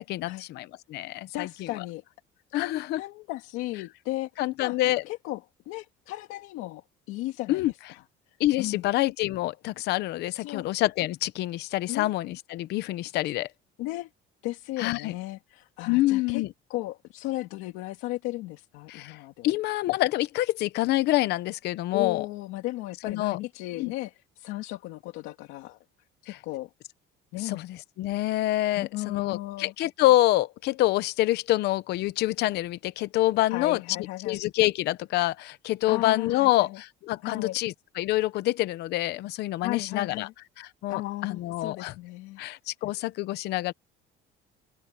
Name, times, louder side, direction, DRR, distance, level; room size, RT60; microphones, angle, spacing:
voice 1, 0.0-1.5 2.5-3.0 4.4-5.0 7.5-7.7 8.4-13.5 14.8-15.1 15.9-16.5 18.9-22.3 23.0-23.4 23.7-23.9 26.3-26.4 27.4-33.8 34.2-40.3 40.6-41.9 42.4-43.7, left 16 dB, 55° left, 0.8 m, -26 dB
voice 2, 1.3-2.0 2.5-4.3 4.6-4.8 5.1-5.4 5.7-7.6 7.9-8.0 8.6-8.8 10.3-10.7 11.9-12.1 13.8-14.1 14.4-16.4 16.7-19.5 21.9-25.8 26.2-26.7 27.3-27.6 28.8-29.7 33.5-34.4 35.9-36.8 37.2-37.6 39.6-40.3 40.9-42.4, left 18 dB, 85° left, 1.9 m, -35 dB
cardioid pair, 180°, 21 cm